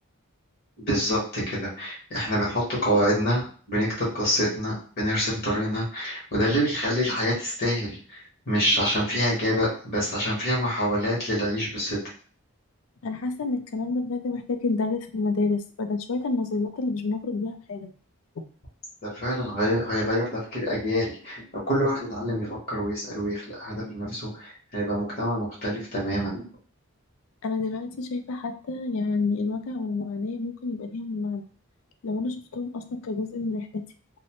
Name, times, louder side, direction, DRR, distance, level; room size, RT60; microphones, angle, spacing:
voice 1, 0.8-12.0 19.0-26.4, equal, 45° left, -5 dB, 1.0 m, -26 dB
voice 2, 13.0-17.9 27.4-31.5 32.0-33.8, left 3 dB, 65° left, 8 dB, 0.3 m, -29 dB
2.6 x 2.0 x 2.8 m, 0.43 s
head